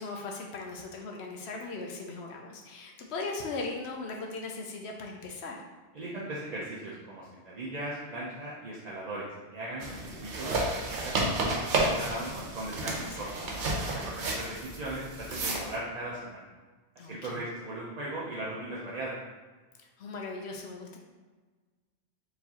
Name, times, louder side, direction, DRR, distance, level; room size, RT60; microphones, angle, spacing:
voice 1, 0.0-5.6 9.9-10.2 12.9-13.6 17.0-17.4 20.0-21.0, left 3 dB, 70° left, 1 dB, 0.8 m, -39 dB
voice 2, 5.9-13.3 13.9-16.5 17.0-19.1, right 1 dB, 45° right, -6 dB, 0.5 m, -38 dB
sound 1, 9.8-15.7, right 2 dB, 70° right, 1.1 m, -31 dB
4.5 x 3.2 x 2.8 m, 1.3 s
omnidirectional pair, 1.2 m